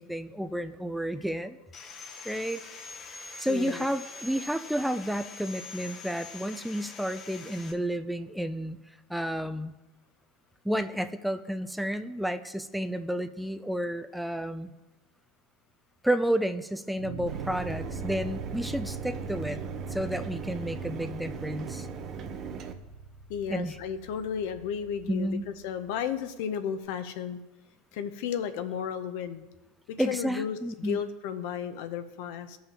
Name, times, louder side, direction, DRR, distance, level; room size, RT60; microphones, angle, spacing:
voice 1, 0.0-1.6 2.2-2.6 3.4-8.8 9.1-9.7 10.6-14.7 16.0-19.6 19.9-21.9 23.5-23.8 25.1-25.5 30.0-31.0, equal, ahead, 10 dB, 0.3 m, -31 dB
Sawing, 1.7-7.7, left 4 dB, 35° left, 0.8 m, -44 dB
voice 2, 3.5-3.9 23.3-27.4 27.9-29.5 30.1-32.6, left 8 dB, 70° left, 9 dB, 0.6 m, -33 dB
sound 1, 17.0-26.1, right 4 dB, 90° right, 0.9 m, -42 dB
Mechanisms, 17.3-22.7, right 6 dB, 40° right, 0.7 m, -39 dB
15.0 x 5.7 x 2.9 m, 1.1 s
supercardioid pair, 115°, 0 cm